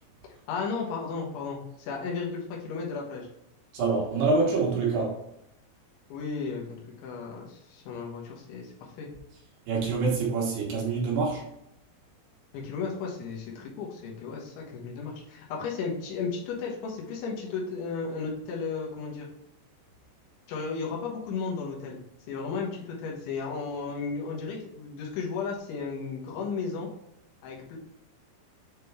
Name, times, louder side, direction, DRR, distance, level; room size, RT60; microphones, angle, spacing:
voice 1, 0.5-3.3 6.1-9.1 12.5-19.3 20.5-22.0 22.3-26.9 27.4-27.8, left 5 dB, 75° left, -1 dB, 3.4 m, -34 dB
voice 2, 3.7-5.2 9.7-11.4, right 4 dB, 70° right, -3 dB, 3.1 m, -26 dB
8.2 x 3.8 x 3.4 m, 0.80 s
omnidirectional pair, 5.6 m